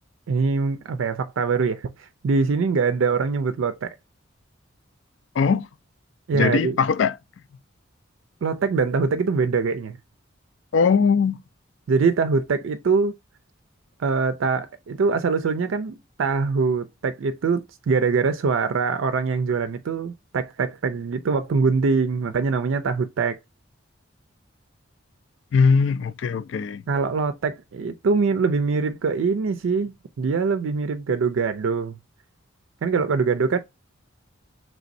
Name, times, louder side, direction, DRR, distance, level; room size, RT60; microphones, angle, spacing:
voice 1, 0.3-4.0 6.3-6.8 8.4-10.0 11.9-13.1 14.0-23.4 26.9-32.0 32.8-33.6, right 4 dB, 80° right, 0.4 m, -23 dB
voice 2, 5.3-5.7 6.3-7.2 10.7-11.4 25.5-26.8, left 5 dB, 65° left, 0.3 m, -20 dB
3.3 x 2.6 x 3.9 m
head